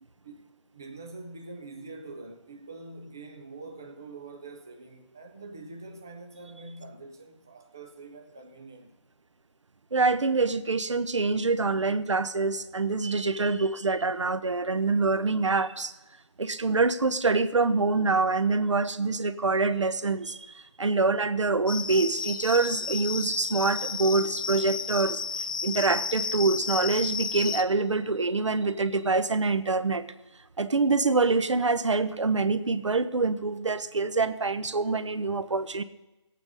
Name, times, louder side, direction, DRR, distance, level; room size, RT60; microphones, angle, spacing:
voice 1, 0.7-8.9, right 3 dB, 5° right, 0.3 m, -44 dB
voice 2, 9.9-15.9 16.4-25.2 25.6-30.1 30.6-35.8, right 3 dB, 75° right, 1.0 m, -25 dB
sound 1, 21.7-27.6, left 5 dB, 45° left, 0.6 m, -32 dB
18.5 x 8.8 x 4.0 m
figure-of-eight pair, 160°, 15 cm